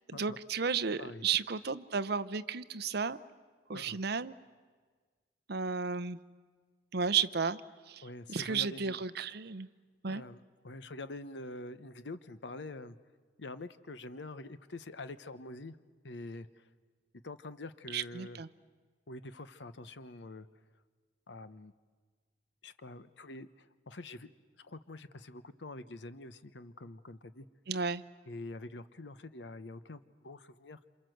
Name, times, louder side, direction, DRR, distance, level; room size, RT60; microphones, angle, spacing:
voice 1, 0.2-3.2 3.7-4.3 5.5-6.2 6.9-7.6 7.9-8.0 8.3-9.7 10.0-10.2 17.9-18.5 27.7-28.0, right 6 dB, 65° right, 14 dB, 0.8 m, -33 dB
voice 2, 8.0-9.0 10.1-13.0 13.4-15.8 16.0-16.7 17.2-18.4 19.1-20.5 21.3-21.7 22.6-24.3 24.6-27.5 28.3-30.8, left 2 dB, 75° left, 13 dB, 1.0 m, -46 dB
28.0 x 27.5 x 7.9 m, 1.5 s
head